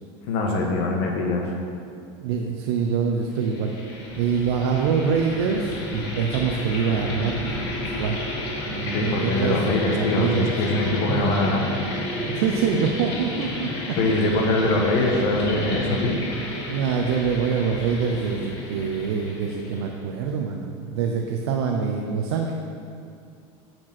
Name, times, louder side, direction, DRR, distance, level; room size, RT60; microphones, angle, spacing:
voice 1, 0.3-1.5 8.9-11.6 14.0-16.2, left 2 dB, 65° left, 1 dB, 1.2 m, -23 dB
voice 2, 2.2-3.7 4.2-7.7 8.0-8.2 8.7-10.5 11.1-11.3 12.3-14.0 16.6-22.5, right 6 dB, 90° right, 1 dB, 0.7 m, -25 dB
sound 1, 3.3-20.0, left 1 dB, 80° left, 2.1 m, -32 dB
8.9 x 4.5 x 5.9 m, 2.3 s
supercardioid pair, 145°, 14 cm